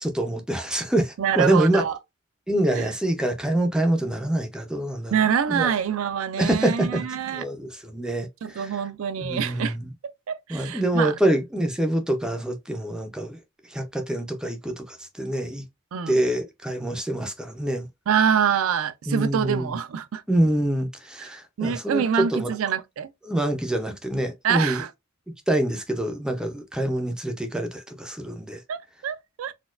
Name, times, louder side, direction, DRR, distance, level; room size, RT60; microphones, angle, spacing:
voice 1, 0.0-1.8 2.5-5.1 5.5-5.7 6.4-7.0 7.3-8.7 9.2-9.9 10.5-13.4 13.7-15.6 16.1-17.9 19.1-19.7 20.3-22.5 23.2-24.8 25.5-28.6, right 1 dB, 5° right, 0.4 m, -25 dB
voice 2, 1.2-2.0 2.7-2.9 5.1-7.4 8.4-9.8 10.3-11.1 15.9-16.2 18.1-20.2 21.2-21.3 21.6-23.1 24.4-24.9 28.7-29.5, right 7 dB, 75° right, 0.4 m, -25 dB
4.1 x 2.2 x 2.3 m
head